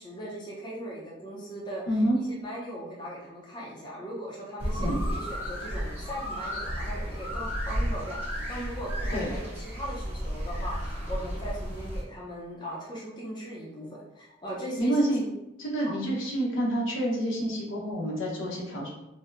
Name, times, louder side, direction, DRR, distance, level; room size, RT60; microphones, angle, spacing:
voice 1, 0.0-1.9 2.2-13.9 14.1-15.3 15.9-16.0, equal, 20° left, -5 dB, 0.6 m, -39 dB
voice 2, 1.9-2.2 4.8-5.0 9.1-9.3 14.8-15.2 15.6-18.9, right 1 dB, 85° left, -3 dB, 1.0 m, -28 dB
sound 1, 4.6-12.0, equal, 10° right, 0.8 m, -33 dB
4.2 x 2.2 x 2.5 m, 0.90 s
head